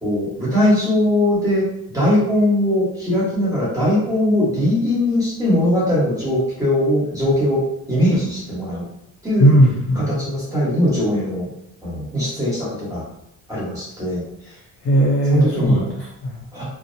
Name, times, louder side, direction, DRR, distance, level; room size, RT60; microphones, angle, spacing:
voice 1, 0.0-7.6 7.9-8.8 9.2-9.5 9.9-11.5 11.8-13.0 13.5-14.2 15.3-15.8 16.5-16.6, left 1 dB, 10° right, -7 dB, 1.1 m, -20 dB
voice 2, 9.4-10.1 14.8-16.4, right 1 dB, 40° left, -4 dB, 0.5 m, -17 dB
2.8 x 2.0 x 2.6 m, 0.80 s
cardioid pair, 155°, 34 cm